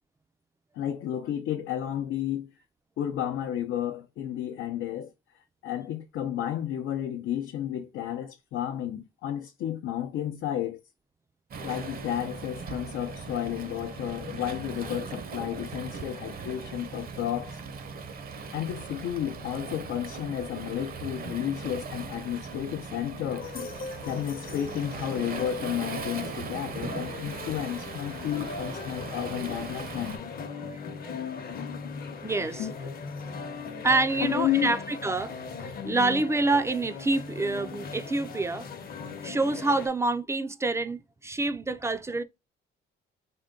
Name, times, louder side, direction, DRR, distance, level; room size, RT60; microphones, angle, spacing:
voice 1, 0.7-2.5 3.0-5.1 5.6-10.8 11.6-17.6 18.5-23.7 24.1-30.2 32.6-32.9 34.2-34.8 35.1-35.2, left 11 dB, 75° left, 0.6 m, -32 dB
Waves surf, 11.5-30.2, right 5 dB, 45° right, 0.7 m, -39 dB
sound 1, 23.4-39.9, left 5 dB, 50° left, 0.8 m, -39 dB
voice 2, 30.7-31.1 32.2-32.7 33.8-38.7 39.2-42.2, right 2 dB, 15° right, 0.4 m, -27 dB
3.7 x 2.2 x 3.7 m
cardioid pair, 100°, 21 cm